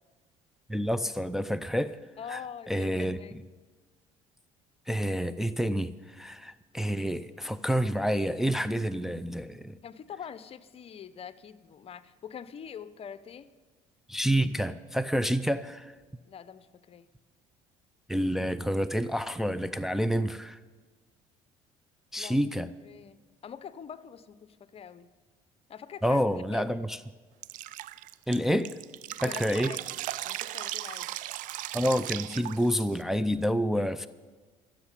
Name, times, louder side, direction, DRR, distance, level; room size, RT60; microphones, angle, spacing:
voice 1, 0.7-2.0 2.3-2.4 2.7-3.2 4.9-9.8 14.1-15.9 18.1-20.6 22.1-22.7 26.0-27.0 28.3-28.7 29.2-29.7 31.7-34.1, equal, 5° right, 10 dB, 0.5 m, -28 dB
voice 2, 2.2-3.5 9.8-13.5 16.2-17.1 22.2-22.4 22.8-25.1 25.7-26.2 26.5-26.9 29.1-29.9 30.2-31.2 33.7-34.1, left 8 dB, 45° left, 14 dB, 0.8 m, -44 dB
Drip, 27.4-33.0, right 15 dB, 70° right, 0.5 m, -37 dB
14.0 x 7.5 x 9.9 m, 1.4 s
supercardioid pair, 80°, 14 cm